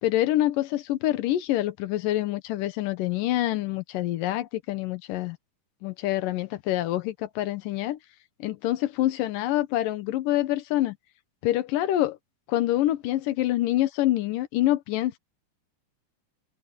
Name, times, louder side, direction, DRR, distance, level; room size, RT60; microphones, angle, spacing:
voice 1, 0.0-5.4 5.8-8.0 8.4-11.0 11.4-12.2 12.5-15.2, left 14 dB, 90° left, 2.7 m, -26 dB
omnidirectional pair, 3.8 m